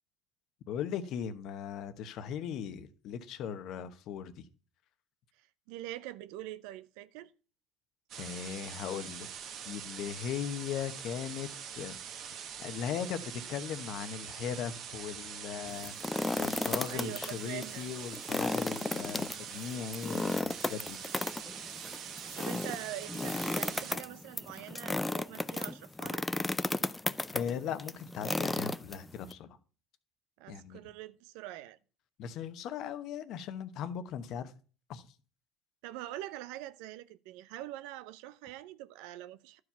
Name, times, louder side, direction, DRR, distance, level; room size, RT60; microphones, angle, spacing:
voice 1, 0.7-4.4 8.2-9.3 9.7-12.0 12.5-21.0 27.3-29.6 30.5-30.8 32.2-34.5 34.9-35.1, left 8 dB, 65° left, 1.0 m, -38 dB
voice 2, 5.3-7.3 16.9-17.9 22.4-26.3 30.4-31.8 35.8-39.6, right 14 dB, 80° right, 0.6 m, -44 dB
sound 1, 8.1-23.9, right 8 dB, 60° right, 1.3 m, -44 dB
sound 2, 15.7-17.3 17.6-17.7 18.1-29.3, left 2 dB, 10° left, 0.4 m, -34 dB
11.5 x 4.8 x 5.6 m
supercardioid pair, 90°, 0 cm